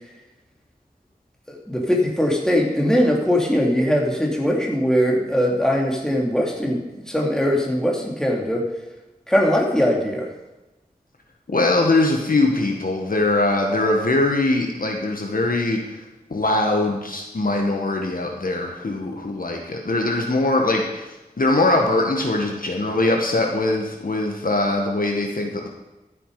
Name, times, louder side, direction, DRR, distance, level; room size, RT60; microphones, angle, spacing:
voice 1, 1.5-8.7 9.3-10.3, equal, 5° left, -1 dB, 2.9 m, -21 dB
voice 2, 11.5-16.0 16.3-21.1 21.4-25.7, left 2 dB, 60° left, 1 dB, 1.7 m, -21 dB
14.0 x 7.7 x 5.0 m, 1.0 s
wide cardioid pair, 50°, 16 cm